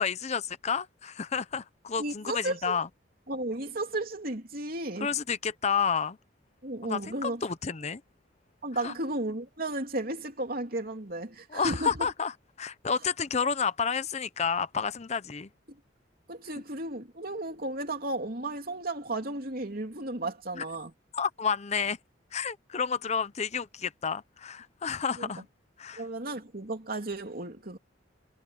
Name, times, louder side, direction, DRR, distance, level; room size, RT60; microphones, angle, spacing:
voice 1, 0.0-2.9 5.0-6.2 6.8-8.0 8.8-8.9 11.5-15.5 20.5-20.6 21.1-22.0 22.3-25.5 25.8-26.0, left 6 dB, 35° left, 0.6 m, -30 dB
voice 2, 2.0-2.8 3.3-5.1 6.6-7.4 8.6-11.9 16.3-20.9 25.2-25.3 26.0-27.8, right 2 dB, 50° right, 3.1 m, -34 dB
head